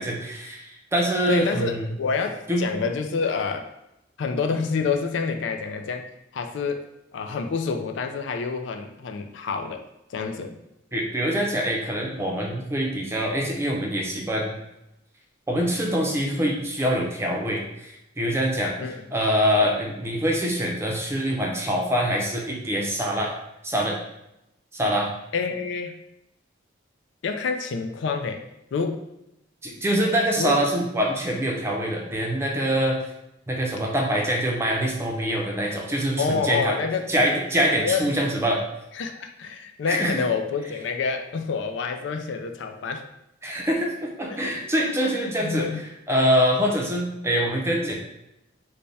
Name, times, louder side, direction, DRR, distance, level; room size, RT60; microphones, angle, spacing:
voice 1, 0.0-1.8 2.5-2.7 10.9-14.6 15.5-18.7 19.1-23.4 23.6-24.0 24.7-25.1 29.6-33.0 33.5-36.8 37.1-38.6 39.9-40.2 43.4-45.7 46.1-47.9, equal, 15° right, -1 dB, 0.6 m, -24 dB
voice 2, 1.3-3.7 4.2-6.0 6.3-6.9 7.1-9.8 10.1-10.6 18.8-19.0 25.3-26.0 27.2-28.5 28.7-29.0 30.4-30.6 36.2-37.0 37.8-38.0 38.9-43.0 44.2-45.9, left 5 dB, 70° left, 5 dB, 0.4 m, -28 dB
3.3 x 2.2 x 4.0 m, 0.86 s
head